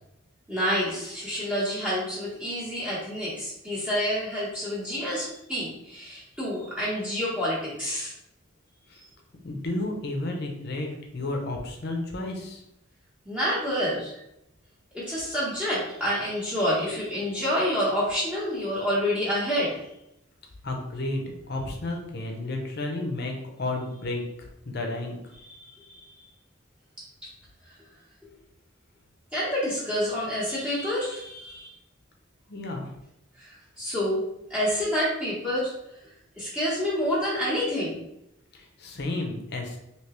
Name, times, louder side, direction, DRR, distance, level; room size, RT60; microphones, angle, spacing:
voice 1, 0.5-8.1 13.3-14.2 14.9-19.7 25.4-26.2 29.3-31.7 33.4-34.2 34.5-35.7 36.4-38.0, equal, 5° right, -10 dB, 1.0 m, -28 dB
voice 2, 9.4-12.6 20.6-23.3 23.6-24.2 24.6-25.2 32.5-32.9 38.5-39.8, left 2 dB, 50° left, 2 dB, 0.7 m, -32 dB
3.3 x 3.0 x 3.0 m, 0.85 s
head